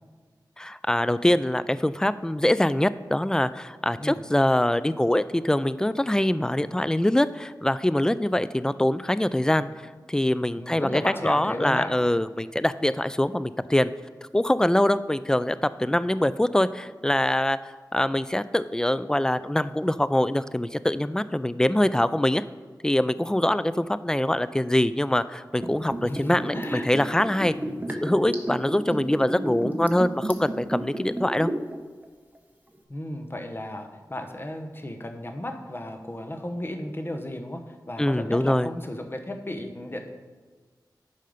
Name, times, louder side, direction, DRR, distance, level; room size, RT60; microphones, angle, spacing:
voice 1, 0.6-9.7 10.1-13.9 14.3-17.6 17.9-22.4 22.8-27.5 27.9-31.5 38.0-38.7, left 1 dB, 10° left, 15 dB, 0.3 m, -24 dB
voice 2, 10.6-11.9 26.0-26.9 27.6-27.8 32.9-40.1, left 1 dB, 30° left, 5 dB, 1.0 m, -34 dB
Liquid, 25.6-31.8 32.0-32.1, right 1 dB, 20° right, 1.1 m, -31 dB
10.5 x 5.6 x 5.0 m, 1.4 s
wide cardioid pair, 60°, 8 cm